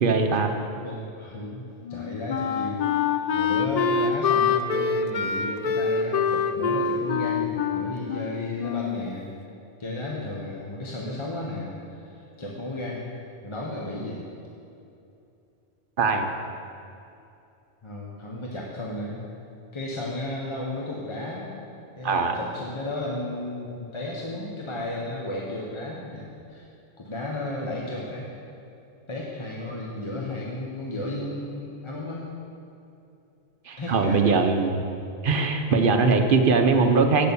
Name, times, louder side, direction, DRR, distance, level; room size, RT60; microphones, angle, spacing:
voice 1, 0.0-0.5 16.0-16.3 22.0-22.4 33.7-34.8 35.2-37.3, right 4 dB, 55° right, 5 dB, 0.8 m, -21 dB
voice 2, 0.8-9.3 9.8-13.1 13.4-14.3 17.8-19.2 19.7-21.5 22.0-26.7 27.0-28.3 29.1-32.3 33.8-34.3, left 2 dB, 25° left, -3 dB, 0.9 m, -34 dB
Wind instrument woodwind instrument, 1.8-9.1, left 6 dB, 85° left, 0.3 m, -25 dB
8.2 x 6.6 x 6.9 m, 2.7 s
omnidirectional pair, 1.2 m